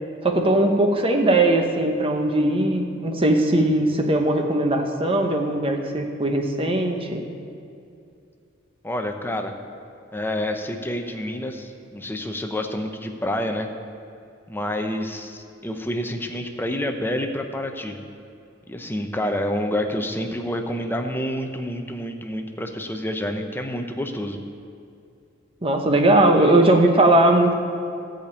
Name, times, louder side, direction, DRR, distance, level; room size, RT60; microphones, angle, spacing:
voice 1, 0.2-7.2 25.6-27.5, right 1 dB, 30° right, 3 dB, 1.0 m, -19 dB
voice 2, 8.8-9.5 10.1-13.7 14.5-18.0 18.7-24.4, left 1 dB, 10° left, 4 dB, 0.7 m, -28 dB
13.5 x 5.2 x 8.4 m, 2.5 s
head